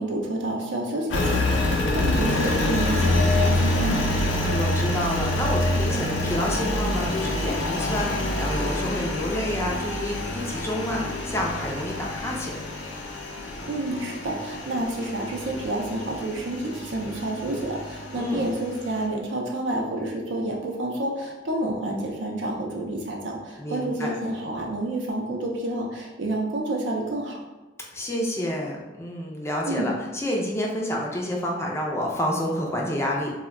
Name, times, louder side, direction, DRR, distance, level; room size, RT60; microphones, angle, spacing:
voice 1, 0.0-4.2 13.7-27.4 29.7-29.9, right 1 dB, 70° right, 0 dB, 0.5 m, -29 dB
Engine, 1.1-19.1, left 1 dB, 70° left, 0.5 m, -27 dB
voice 2, 4.4-12.5 18.1-18.5 23.6-24.1 27.9-33.3, left 1 dB, 15° left, -2 dB, 0.4 m, -29 dB
2.2 x 2.1 x 3.5 m, 1.1 s
head